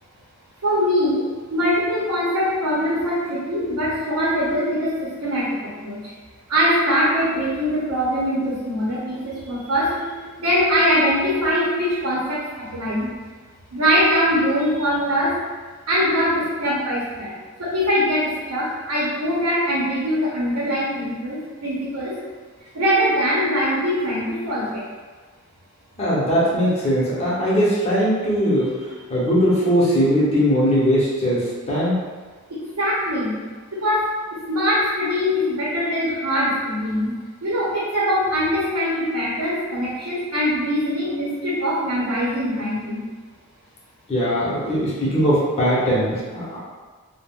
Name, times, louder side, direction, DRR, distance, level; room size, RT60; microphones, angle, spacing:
voice 1, 0.6-1.2 1.5-4.9 5.2-5.5 5.8-6.0 6.5-12.4 12.7-13.1 13.7-15.3 15.9-17.3 17.6-22.1 22.7-24.8 32.5-33.4 33.7-37.1 37.4-43.0, equal, 85° right, -8 dB, 0.7 m, -22 dB
voice 2, 26.0-28.7 29.1-32.0 44.1-46.6, equal, 30° left, -8 dB, 0.7 m, -20 dB
2.3 x 2.1 x 3.5 m, 1.4 s
head